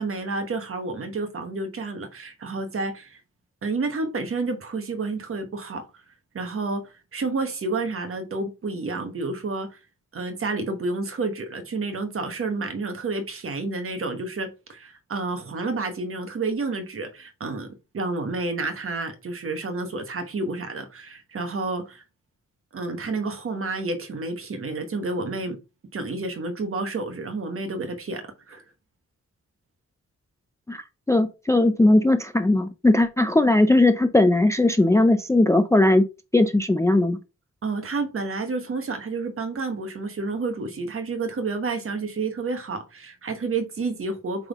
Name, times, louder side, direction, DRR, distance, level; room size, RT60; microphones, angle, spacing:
voice 1, 0.0-3.2 3.6-5.9 6.3-9.8 10.1-22.0 22.7-25.6 25.9-28.6 37.6-44.5, right 3 dB, 45° right, 1.2 m, -30 dB
voice 2, 31.1-36.0 36.3-37.2, left 2 dB, 10° left, 0.4 m, -18 dB
8.0 x 3.6 x 3.5 m
wide cardioid pair, 170°, 30 cm